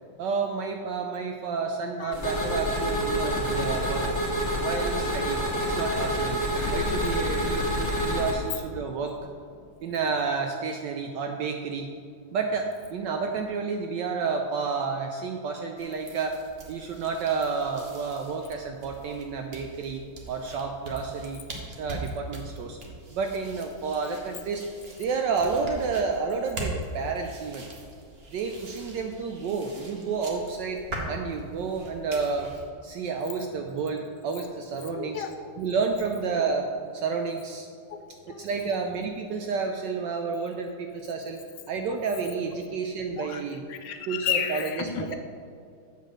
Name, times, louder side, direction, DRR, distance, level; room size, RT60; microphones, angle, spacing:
voice 1, 0.2-4.0 4.6-6.4 6.7-9.1 9.8-11.9 12.3-16.4 16.7-20.0 20.3-21.4 21.8-22.8 23.1-24.6 25.0-27.7 28.3-30.8 31.1-32.5 32.8-35.2 35.6-36.7 36.9-37.7 38.4-41.4 41.7-43.6 44.1-45.1, right 5 dB, 75° right, 3 dB, 1.0 m, -30 dB
voice 2, 2.0-2.5 34.9-35.3 37.9-38.8 41.9-42.0 43.2-43.4 43.7-45.1, left 9 dB, 80° left, 7 dB, 1.5 m, -33 dB
sound 1, 2.1-8.3, equal, 15° left, 1.6 m, -27 dB
sound 2, 15.8-32.6, right 1 dB, 40° right, 0.9 m, -41 dB
8.3 x 4.2 x 6.3 m, 2.4 s
omnidirectional pair, 2.3 m